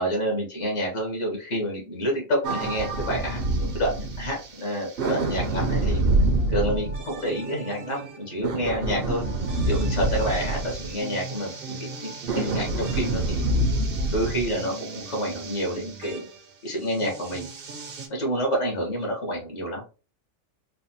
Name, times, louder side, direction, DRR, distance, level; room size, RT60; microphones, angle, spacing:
voice 1, 0.0-6.0 6.5-9.2 9.6-13.4 14.1-16.3 16.6-17.5 18.1-19.8, equal, 70° left, 0 dB, 1.7 m, -28 dB
sound 1, 2.4-4.6 5.0-16.2 17.0-18.1, right 2 dB, 55° right, 0.9 m, -27 dB
4.1 x 2.4 x 2.8 m, 0.33 s
omnidirectional pair, 1.3 m